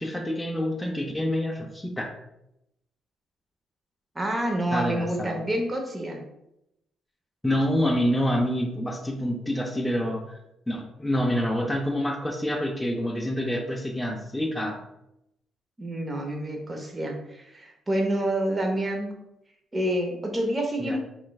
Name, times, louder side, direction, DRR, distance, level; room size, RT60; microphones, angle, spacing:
voice 1, 0.0-2.1 4.7-5.4 7.4-10.4 10.7-14.8 20.8-21.0, equal, 5° left, 1 dB, 0.5 m, -27 dB
voice 2, 4.1-6.2 15.8-19.1 19.7-21.0, right 1 dB, 20° right, 2 dB, 0.8 m, -28 dB
4.4 x 3.1 x 2.3 m, 0.83 s
cardioid pair, 90°, 0 cm